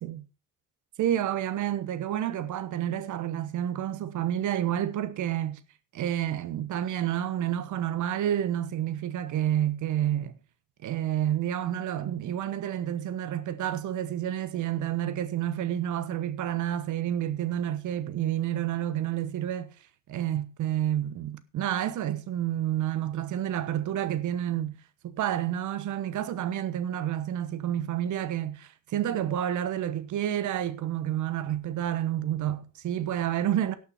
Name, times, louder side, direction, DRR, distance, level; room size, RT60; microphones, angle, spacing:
voice 1, 1.0-5.6 5.9-10.3 10.8-19.7 20.1-24.7 25.0-33.8, right 11 dB, 80° right, 1.2 m, -29 dB
17.5 x 6.1 x 4.3 m
cardioid pair, 90°, 30 cm